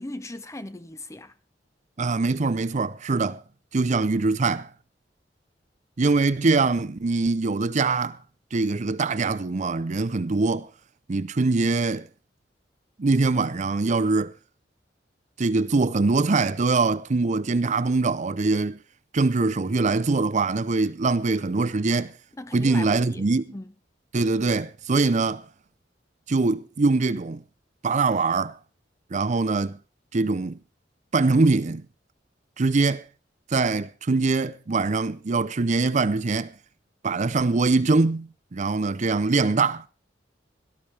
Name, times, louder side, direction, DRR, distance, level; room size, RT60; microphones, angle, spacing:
voice 1, 0.0-1.3 22.4-23.3 23.5-23.7, left 1 dB, 15° left, 0.7 m, -38 dB
voice 2, 2.0-3.4 3.7-4.7 6.0-8.2 8.5-10.7 11.1-12.1 13.0-14.3 15.4-18.8 19.1-22.1 22.5-23.5 24.1-25.4 26.3-27.4 27.8-28.5 29.1-29.8 30.1-30.6 31.1-31.8 32.6-33.0 33.5-36.5 37.0-39.9, right 3 dB, 45° right, 0.5 m, -23 dB
17.5 x 13.0 x 3.3 m
head